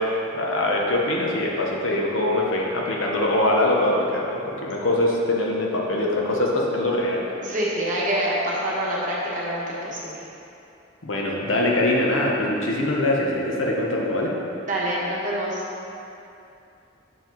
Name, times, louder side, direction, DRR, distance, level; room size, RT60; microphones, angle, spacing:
voice 1, 0.0-7.2 11.0-14.3, left 1 dB, 75° left, -2 dB, 0.9 m, -23 dB
voice 2, 7.4-10.2 14.6-15.6, right 1 dB, 40° right, -6 dB, 1.2 m, -26 dB
6.7 x 4.5 x 3.9 m, 2.7 s
head